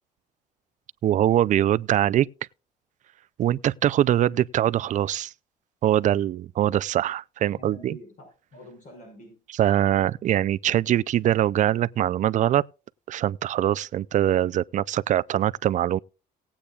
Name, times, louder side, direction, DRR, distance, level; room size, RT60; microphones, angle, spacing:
voice 1, 1.0-2.3 3.4-5.3 5.8-8.0 9.6-12.6 13.1-16.0, right 12 dB, 45° right, 0.4 m, -23 dB
voice 2, 7.4-9.4, left 1 dB, 50° left, 5.7 m, -46 dB
19.0 x 8.6 x 2.4 m
cardioid pair, 110°, 17 cm